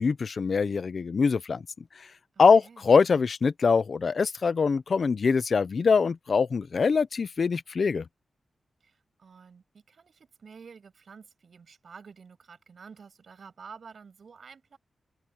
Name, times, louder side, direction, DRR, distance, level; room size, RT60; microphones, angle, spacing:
voice 1, 0.0-1.6 2.4-8.0, left 5 dB, 50° left, 0.8 m, -23 dB
voice 2, 2.3-2.9 8.8-14.8, right 5 dB, 60° right, 7.1 m, -50 dB
wide cardioid pair, 140°, 0 cm